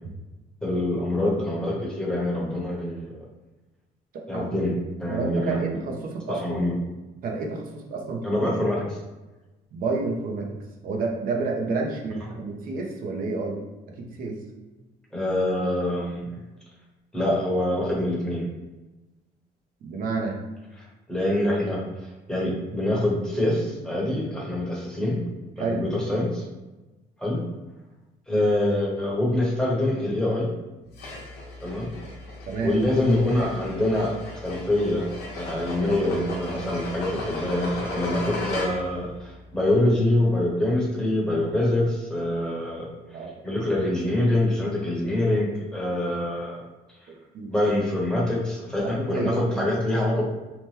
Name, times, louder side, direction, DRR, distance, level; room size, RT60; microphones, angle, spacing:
voice 1, 0.6-3.3 4.3-4.7 5.0-5.7 6.3-6.7 8.2-9.0 15.1-16.3 17.1-18.5 20.8-25.2 25.6-26.4 27.2-27.4 28.3-30.5 31.6-31.9 32.6-35.1 35.3-46.6 47.5-50.2, left 1 dB, 5° left, -4 dB, 0.9 m, -25 dB
voice 2, 4.1-4.6 5.1-6.6 7.2-8.3 9.7-10.6 10.8-13.6 14.0-14.4 19.8-20.4 25.6-25.8 32.5-32.7 43.1-43.3 47.1-47.5 48.9-49.7, right 3 dB, 60° right, 1 dB, 0.6 m, -29 dB
sound 1, 30.9-39.0, left 2 dB, 75° left, 0.8 m, -36 dB
2.9 x 2.1 x 3.2 m, 1.1 s
cardioid pair, 110°, 17 cm